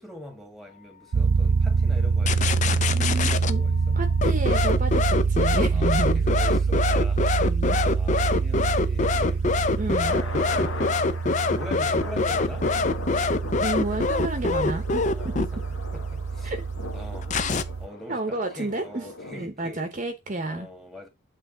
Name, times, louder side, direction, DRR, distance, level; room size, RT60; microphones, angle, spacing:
voice 1, 0.0-4.0 5.7-7.3 7.7-9.5 10.1-11.1 11.5-12.7 15.0-15.6 15.9-16.5 16.9-17.4 17.8-19.9 20.5-21.1, left 1 dB, ahead, 1.5 m, -43 dB
sound 1, 1.1-17.9, right 4 dB, 80° right, 0.5 m, -25 dB
sound 2, 2.2-3.5 4.2-15.5 17.2-17.6, left 4 dB, 35° left, 0.5 m, -24 dB
voice 2, 2.9-3.6 3.9-6.2 7.4-7.8 9.8-10.2 13.6-15.5 16.4-16.6 18.1-19.0 19.3-20.7, right 2 dB, 35° right, 0.9 m, -31 dB
sound 3, 9.3-19.4, left 3 dB, 70° left, 1.0 m, -40 dB
8.2 x 3.4 x 3.8 m
head